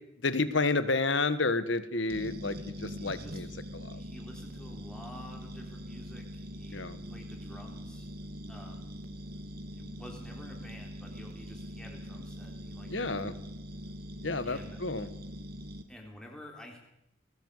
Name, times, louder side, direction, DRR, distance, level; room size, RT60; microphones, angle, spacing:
voice 1, 0.2-3.5 3.7-4.0 6.7-7.0 12.9-13.3 14.2-15.1, left 3 dB, 70° left, 13 dB, 1.5 m, -30 dB
sound 1, 2.1-15.8, equal, 55° right, 2.2 m, -43 dB
voice 2, 3.0-3.4 3.9-8.1 8.5-8.9 9.7-13.4 14.4-14.8 15.9-16.8, left 1 dB, 5° left, 0 dB, 3.3 m, -50 dB
19.5 x 19.0 x 8.1 m, 0.83 s
head